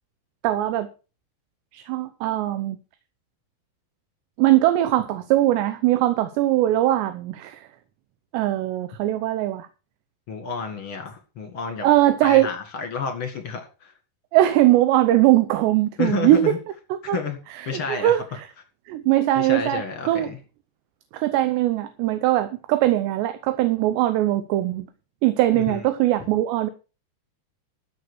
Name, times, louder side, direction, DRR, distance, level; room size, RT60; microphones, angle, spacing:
voice 1, 0.4-0.9 1.7-2.8 4.4-7.7 8.3-9.7 11.8-12.5 14.3-16.5 17.1-17.2 17.5-18.5 18.9-20.3 21.1-24.9 25.2-26.7, right 14 dB, 80° right, 3.0 m, -21 dB
voice 2, 10.3-11.9 12.2-13.9 16.0-16.6 17.1-17.4 17.7-18.4 19.3-20.4 25.5-25.8 26.2-26.3, left 6 dB, 45° left, 1.9 m, -30 dB
13.5 x 7.0 x 6.3 m
omnidirectional pair, 5.1 m